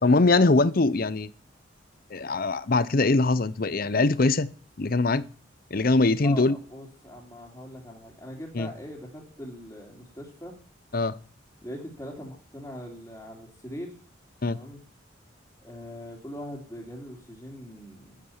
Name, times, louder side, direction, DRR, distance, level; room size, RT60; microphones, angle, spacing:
voice 1, 0.0-1.3 2.1-4.5 4.8-5.2 5.7-6.6 8.5-8.7 10.9-11.1 14.4-14.6, left 3 dB, 45° left, 18 dB, 0.7 m, -22 dB
voice 2, 6.2-10.6 11.6-14.0 14.5-14.8 15.6-18.2, left 1 dB, 15° left, -6 dB, 2.8 m, -41 dB
12.0 x 9.6 x 7.2 m, 0.41 s
head